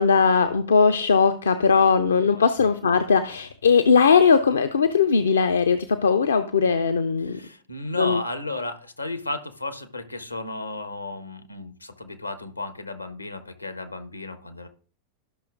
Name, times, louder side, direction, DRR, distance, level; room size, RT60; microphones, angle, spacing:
voice 1, 0.0-7.4 8.0-8.2, left 5 dB, 70° left, 10 dB, 0.5 m, -19 dB
voice 2, 7.2-14.7, left 2 dB, 85° left, 8 dB, 1.1 m, -34 dB
13.0 x 6.2 x 2.4 m, 0.42 s
figure-of-eight pair, 90°, 0 cm